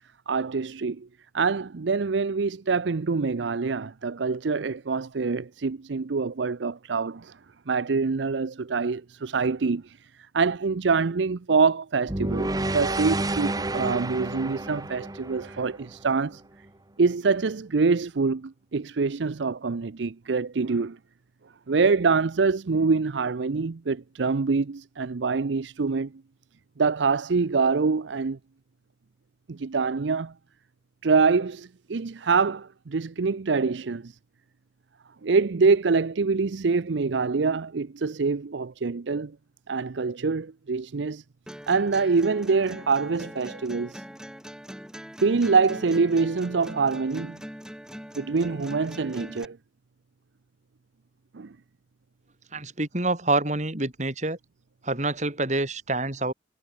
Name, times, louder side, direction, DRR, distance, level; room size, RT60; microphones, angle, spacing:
voice 1, 0.3-1.1 1.3-7.3 7.7-10.0 10.3-16.4 17.0-21.0 21.7-26.1 26.8-28.4 29.5-30.3 31.0-34.1 35.2-39.4 39.7-41.2 41.7-44.0 45.2-47.4 48.2-49.6 51.3-51.5, right 4 dB, 75° right, 0.6 m, -25 dB
sound 1, 12.1-16.3, right 2 dB, 20° right, 1.0 m, -30 dB
sound 2, 41.5-49.4, equal, 5° right, 5.4 m, -42 dB
voice 2, 52.5-54.4 54.8-56.3, right 2 dB, 40° right, 3.6 m, -27 dB
head